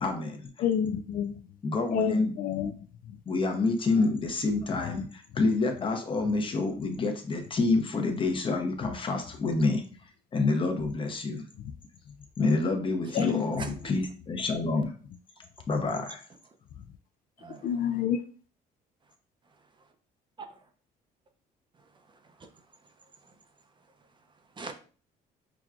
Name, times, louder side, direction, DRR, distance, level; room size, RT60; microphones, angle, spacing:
voice 1, 0.0-0.5 1.6-2.3 3.3-9.8 10.3-11.4 12.4-14.9 15.7-16.2, left 3 dB, 30° left, 5 dB, 0.8 m, -28 dB
voice 2, 0.6-1.3 1.9-2.7 13.1-13.7 17.6-18.2, left 9 dB, 55° left, 8 dB, 0.4 m, -28 dB
voice 3, 13.1-13.9 17.4-17.7 20.4-20.6 22.1-22.6 23.2-23.3 24.6-24.7, right 4 dB, 30° right, 6 dB, 0.5 m, -43 dB
6.0 x 2.3 x 2.4 m, 0.40 s
cardioid pair, 110°, 17 cm